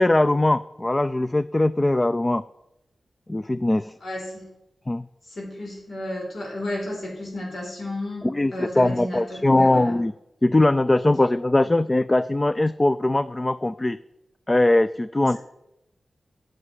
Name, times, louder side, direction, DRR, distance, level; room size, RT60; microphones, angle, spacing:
voice 1, 0.0-2.4 3.3-3.9 4.9-5.0 8.2-10.1 10.4-14.0 14.5-15.4, left 2 dB, 20° left, 15 dB, 0.4 m, -21 dB
voice 2, 4.0-4.5 5.3-8.3 8.5-10.0, left 1 dB, 70° left, -2 dB, 4.5 m, -32 dB
10.5 x 7.8 x 9.9 m, 0.88 s
wide cardioid pair, 90°, 0 cm